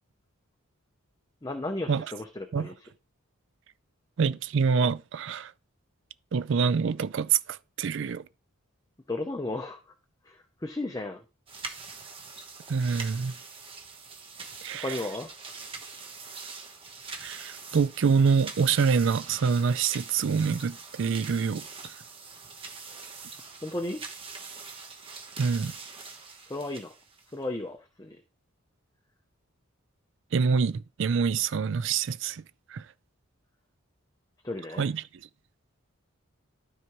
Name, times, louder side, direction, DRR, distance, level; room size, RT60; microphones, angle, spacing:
voice 1, 1.4-2.7 9.1-9.9 10.2-11.2 14.8-15.3 23.6-24.0 26.5-26.9 27.3-28.2 34.4-34.9, left 2 dB, 15° left, 0.6 m, -34 dB
voice 2, 4.2-5.5 6.3-8.2 12.7-13.4 14.6-14.9 17.1-21.9 25.4-25.8 30.3-32.4 32.7-32.9 34.8-35.0, right 5 dB, 55° right, 0.4 m, -26 dB
sound 1, 11.5-27.4, right 4 dB, 25° right, 1.0 m, -43 dB
12.5 x 4.7 x 3.0 m
head